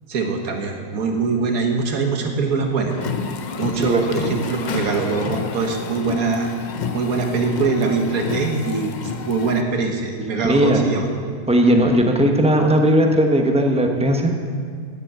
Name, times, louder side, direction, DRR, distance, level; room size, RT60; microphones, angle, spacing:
voice 1, 0.1-3.0 3.6-6.5 6.9-8.9 9.3-11.1 11.6-11.8, right 4 dB, 70° right, 3 dB, 1.7 m, -22 dB
sound 1, 2.9-9.6, left 5 dB, 90° left, 0.4 m, -29 dB
voice 2, 10.4-10.8 11.5-14.3, equal, 5° right, 3 dB, 0.7 m, -17 dB
9.1 x 8.4 x 8.1 m, 2.1 s
omnidirectional pair, 1.6 m